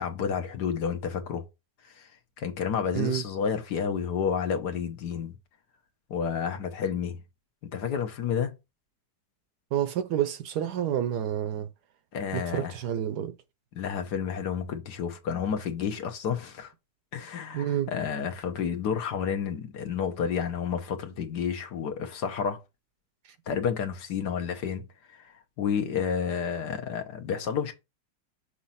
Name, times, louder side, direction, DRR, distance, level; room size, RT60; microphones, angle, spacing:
voice 1, 0.0-1.4 1.9-2.1 2.4-5.3 6.1-7.2 7.7-8.5 12.1-12.7 13.7-16.7 17.1-22.6 23.5-24.9 25.2-25.3 25.6-27.7, left 7 dB, 65° left, 1.5 m, -30 dB
voice 2, 9.7-11.7 12.3-13.3 17.5-17.9, right 10 dB, 70° right, 1.1 m, -29 dB
6.3 x 2.8 x 5.6 m
omnidirectional pair, 2.0 m